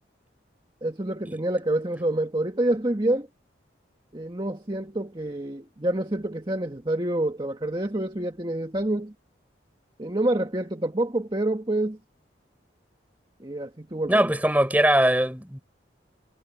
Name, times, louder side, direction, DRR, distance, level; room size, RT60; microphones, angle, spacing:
voice 1, 0.8-3.3 4.1-9.1 10.0-12.0 13.4-14.4, right 1 dB, 25° right, 1.6 m, -27 dB
voice 2, 14.1-15.6, right 1 dB, 10° right, 4.3 m, -21 dB
head